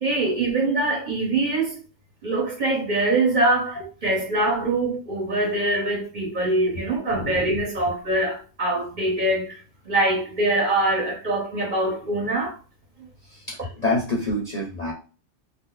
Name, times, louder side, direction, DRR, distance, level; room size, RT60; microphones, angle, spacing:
voice 1, 0.0-1.8 2.2-9.5 9.8-12.6, right 2 dB, 40° right, 1.2 m, -23 dB
voice 2, 7.2-7.6 13.3-14.9, left 2 dB, 40° left, 0.8 m, -27 dB
2.8 x 2.1 x 3.8 m
omnidirectional pair, 1.3 m